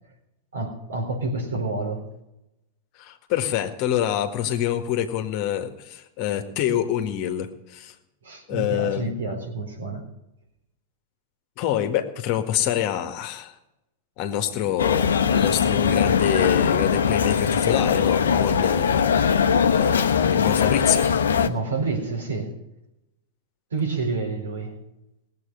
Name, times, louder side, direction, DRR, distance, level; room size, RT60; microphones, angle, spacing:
voice 1, 0.5-2.0 8.2-10.0 21.4-22.5 23.7-24.7, right 3 dB, 80° right, 2 dB, 4.1 m, -28 dB
voice 2, 3.0-7.9 8.5-9.1 11.6-13.5 14.2-19.0 19.7-21.1, left 11 dB, 50° left, 6 dB, 1.7 m, -26 dB
sound 1, 14.8-21.5, left 7 dB, 75° left, 0.9 m, -21 dB
19.0 x 8.0 x 6.6 m, 0.90 s
figure-of-eight pair, 95°, 0 cm